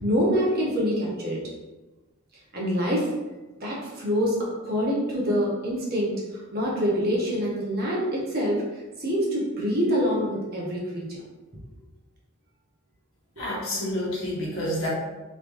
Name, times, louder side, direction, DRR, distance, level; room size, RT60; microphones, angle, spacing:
voice 1, 0.0-1.4 2.5-3.1 3.6-11.2, equal, 50° right, -4 dB, 1.0 m, -26 dB
voice 2, 13.4-14.9, left 1 dB, 75° left, -6 dB, 1.3 m, -29 dB
3.3 x 3.0 x 2.6 m, 1.2 s
head